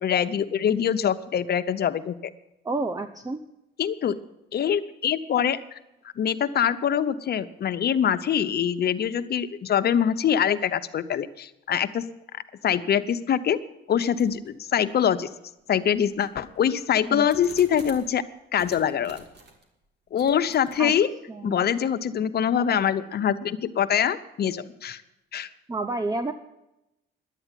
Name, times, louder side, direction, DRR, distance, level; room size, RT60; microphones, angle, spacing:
voice 1, 0.0-2.3 3.8-4.2 4.5-5.8 6.2-12.0 12.6-13.6 13.9-15.3 15.7-18.2 18.5-19.2 20.1-21.1 21.4-25.0 25.3-25.5, left 8 dB, 55° left, 11 dB, 0.8 m, -24 dB
voice 2, 2.6-3.4 17.1-17.3 20.8-20.9 21.3-21.7 25.7-26.3, right 2 dB, 20° right, 8 dB, 0.6 m, -29 dB
sound 1, 14.2-14.5 15.1-15.2 15.9-18.2 18.6-19.7 20.2-20.8, right 2 dB, 55° right, 2.6 m, -48 dB
11.0 x 9.0 x 9.0 m, 0.90 s
cardioid pair, 90°, 20 cm